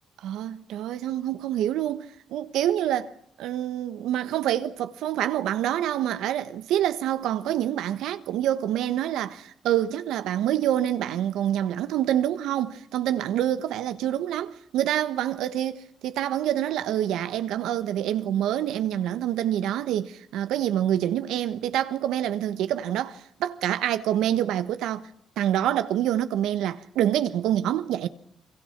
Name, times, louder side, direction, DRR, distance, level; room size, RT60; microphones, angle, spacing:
voice 1, 0.2-3.1 3.4-25.1 25.4-28.1, right 11 dB, 85° right, 1.3 m, -26 dB
28.5 x 23.0 x 6.0 m
cardioid pair, 90°, 0 cm